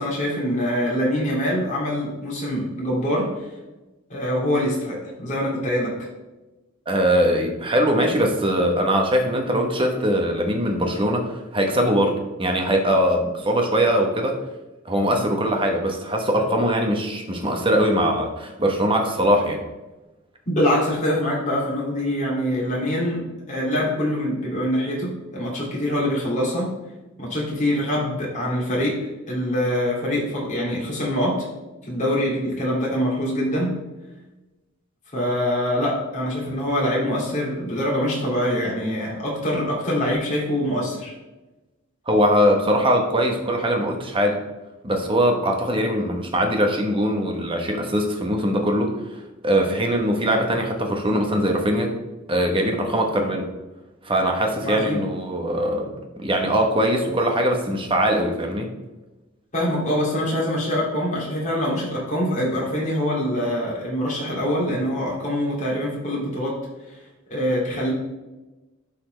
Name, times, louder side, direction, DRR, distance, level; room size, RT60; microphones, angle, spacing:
voice 1, 0.0-3.3 4.1-5.9 20.5-26.7 27.2-31.5 31.8-33.7 35.1-41.1 54.6-55.0 59.5-66.6 66.9-67.0 67.3-67.9, equal, 35° left, -5 dB, 2.6 m, -24 dB
voice 2, 6.9-14.4 14.8-19.6 42.1-44.4 44.8-51.9 52.3-53.5 54.0-55.9 56.2-58.7, equal, 25° right, 2 dB, 1.1 m, -21 dB
12.0 x 4.2 x 3.3 m, 1.1 s
head